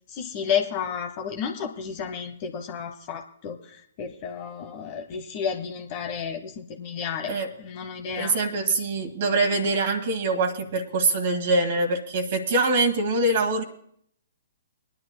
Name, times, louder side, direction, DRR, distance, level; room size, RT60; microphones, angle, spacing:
voice 1, 0.1-8.3, left 7 dB, 40° left, 5 dB, 1.1 m, -32 dB
voice 2, 8.2-13.6, right 2 dB, 55° right, 4 dB, 1.7 m, -24 dB
24.5 x 10.5 x 2.2 m, 0.65 s
figure-of-eight pair, 125°, 0 cm